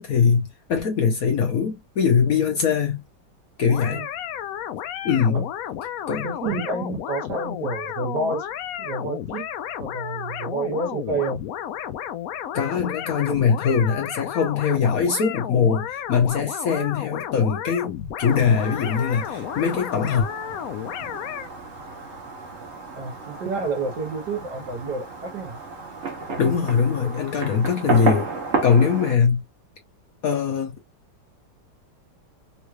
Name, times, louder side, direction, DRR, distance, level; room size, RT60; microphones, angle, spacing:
voice 1, 0.0-3.0 3.6-4.0 5.0-5.5 6.1-6.3 12.5-20.3 26.4-28.3 28.6-29.4 30.2-30.7, left 6 dB, 60° left, 1.0 m, -22 dB
sound 1, 3.7-21.5, left 10 dB, 80° left, 0.7 m, -32 dB
voice 2, 6.2-8.5 8.8-9.5 9.8-11.4 23.0-25.6 26.3-26.5, right 3 dB, 65° right, 1.6 m, -29 dB
Fireworks, 18.2-29.1, right 4 dB, 45° right, 1.0 m, -32 dB
3.6 x 3.1 x 2.3 m
omnidirectional pair, 2.1 m